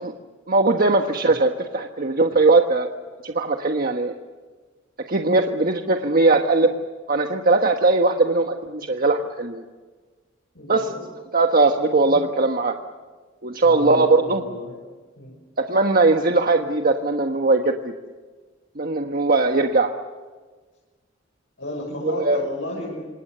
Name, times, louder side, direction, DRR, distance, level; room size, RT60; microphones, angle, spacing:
voice 1, 0.5-2.9 3.2-4.1 5.1-6.7 7.1-9.6 10.7-10.8 11.3-12.8 13.4-14.4 15.6-17.9 18.8-19.9 22.0-22.4, right 3 dB, 50° right, 4 dB, 1.4 m, -19 dB
voice 2, 10.5-11.0 12.0-12.2 13.6-14.8 15.2-15.3 21.6-23.1, left 1 dB, 75° left, -2 dB, 7.0 m, -33 dB
27.0 x 27.0 x 6.9 m, 1.4 s
head